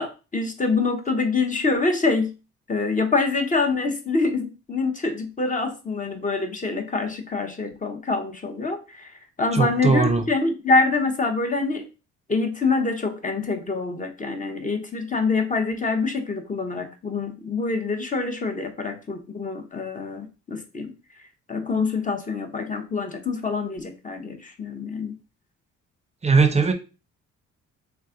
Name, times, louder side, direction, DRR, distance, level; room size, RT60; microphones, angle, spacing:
voice 1, 0.0-2.3 2.7-9.1 9.4-11.8 12.3-20.9 21.5-25.1, left 3 dB, 25° left, 6 dB, 0.8 m, -25 dB
voice 2, 9.5-10.2 26.2-26.7, right 4 dB, 20° right, 8 dB, 0.7 m, -19 dB
3.4 x 3.1 x 3.7 m, 0.31 s
cardioid pair, 90°, 30 cm